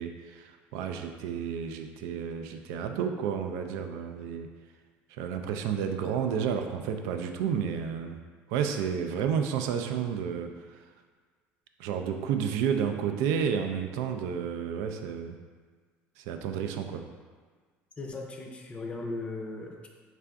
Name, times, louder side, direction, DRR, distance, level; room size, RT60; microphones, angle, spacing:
voice 1, 0.0-4.5 5.1-8.2 8.5-10.8 11.8-15.3 16.2-17.1, right 7 dB, 85° right, 6 dB, 0.3 m, -31 dB
voice 2, 18.0-19.9, left 2 dB, 25° left, 1 dB, 0.5 m, -37 dB
4.5 x 2.5 x 3.4 m, 1.5 s
cardioid pair, 120°, 5 cm